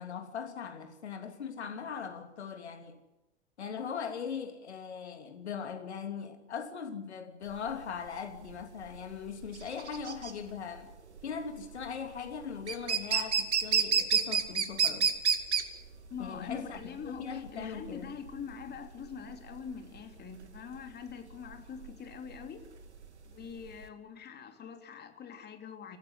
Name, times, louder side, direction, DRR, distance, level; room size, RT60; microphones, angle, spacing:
voice 1, 0.0-3.0 3.6-10.9 11.2-15.1 16.2-16.8 17.0-18.2, left 6 dB, 75° left, 3.0 m, -40 dB
sound 1, 7.5-23.9, right 6 dB, 80° right, 2.2 m, -31 dB
voice 2, 16.1-22.7 23.3-26.0, left 6 dB, 30° left, 3.3 m, -44 dB
27.0 x 15.0 x 8.2 m
figure-of-eight pair, 85°, 34 cm